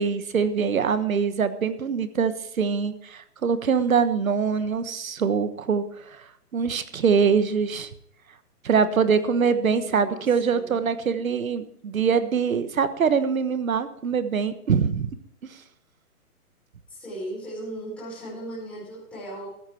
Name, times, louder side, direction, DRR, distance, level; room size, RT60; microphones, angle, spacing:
voice 1, 0.0-2.3 2.6-6.2 6.5-7.9 8.6-15.2, right 6 dB, 60° right, 12 dB, 1.3 m, -23 dB
voice 2, 9.7-10.7 16.9-19.5, right 1 dB, 5° left, -10 dB, 4.8 m, -37 dB
14.0 x 9.7 x 4.5 m, 0.71 s
hypercardioid pair, 175°, 46 cm